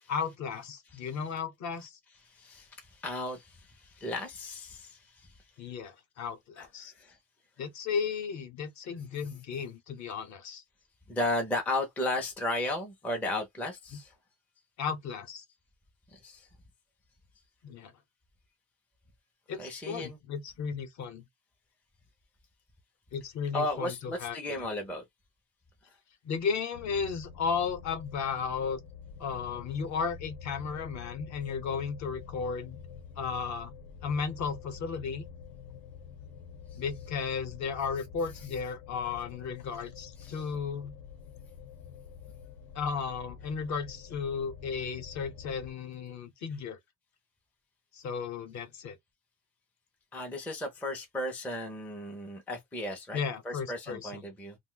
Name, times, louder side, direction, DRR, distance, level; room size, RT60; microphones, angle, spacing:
voice 1, 0.1-2.0 5.6-6.9 7.6-10.6 13.9-14.0 14.8-15.4 17.6-17.9 19.5-21.2 23.1-24.7 26.2-28.8 29.2-32.8 33.2-33.7 34.0-35.3 36.7-41.0 42.7-46.8 47.9-49.0 53.1-54.2, left 6 dB, 45° left, 0.7 m, -34 dB
voice 2, 2.3-5.3 6.6-7.2 11.1-14.1 16.1-16.5 19.5-20.2 23.5-25.0 40.2-40.4 50.1-54.6, left 1 dB, 5° left, 0.4 m, -35 dB
sound 1, 26.7-45.7, left 6 dB, 70° left, 0.8 m, -47 dB
2.5 x 2.2 x 3.7 m
cardioid pair, 165°, 40 cm